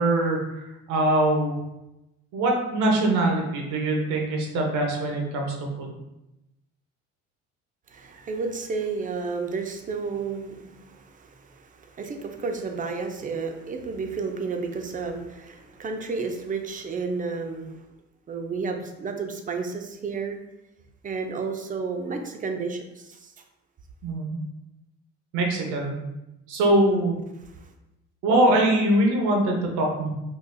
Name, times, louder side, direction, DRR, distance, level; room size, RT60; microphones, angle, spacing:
voice 1, 0.0-1.5 2.3-6.0 24.0-24.4 25.3-26.0 26.5-27.1 28.2-30.1, right 1 dB, 90° right, 1 dB, 0.8 m, -23 dB
voice 2, 7.9-17.8 18.3-20.4 21.0-23.3 26.7-27.0 27.5-27.7, right 4 dB, 30° right, 4 dB, 0.4 m, -32 dB
3.9 x 2.4 x 2.5 m, 0.94 s
cardioid pair, 105°, 29 cm